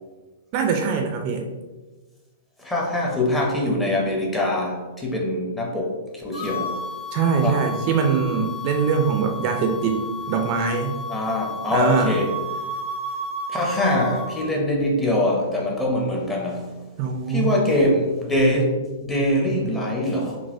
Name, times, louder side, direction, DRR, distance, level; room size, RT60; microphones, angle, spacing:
voice 1, 0.5-1.4 7.1-10.0 10.3-11.0 11.7-12.2 17.0-17.5, right 6 dB, 40° right, 4 dB, 0.4 m, -22 dB
voice 2, 2.6-6.8 7.4-7.6 11.1-12.3 13.5-16.7 17.3-20.4, left 1 dB, 10° left, -2 dB, 0.7 m, -23 dB
sound 1, 6.3-14.5, left 1 dB, 30° left, 1.3 m, -32 dB
3.9 x 2.2 x 2.6 m, 1.2 s
figure-of-eight pair, 110°, 0 cm